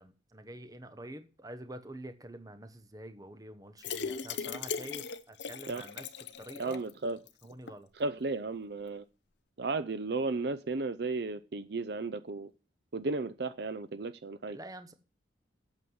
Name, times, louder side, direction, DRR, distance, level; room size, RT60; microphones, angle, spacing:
voice 1, 0.0-6.1 6.4-6.9 7.4-7.9 14.5-14.9, right 1 dB, 20° right, 1.0 m, -47 dB
sound 1, 3.8-6.9 7.3-7.4 7.7-7.8, left 6 dB, 70° left, 0.8 m, -38 dB
voice 2, 6.6-7.2 8.0-9.0 9.6-12.5 12.9-14.6, right 3 dB, 60° right, 0.6 m, -34 dB
8.6 x 7.3 x 7.9 m
head